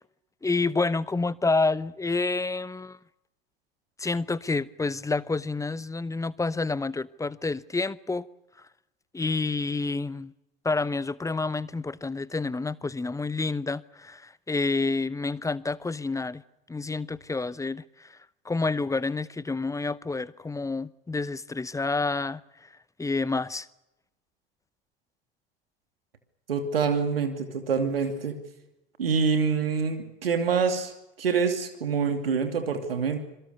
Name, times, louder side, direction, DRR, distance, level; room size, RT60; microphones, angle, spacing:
voice 1, 0.4-3.0 4.0-8.3 9.1-10.3 10.6-16.4 16.7-18.2 18.4-22.4 23.0-23.7, left 3 dB, 10° left, 0.9 m, -28 dB
voice 2, 26.5-28.4 29.0-30.9 31.2-33.2, right 5 dB, 75° right, 2.8 m, -26 dB
26.5 x 23.0 x 6.8 m
figure-of-eight pair, 65°, 29 cm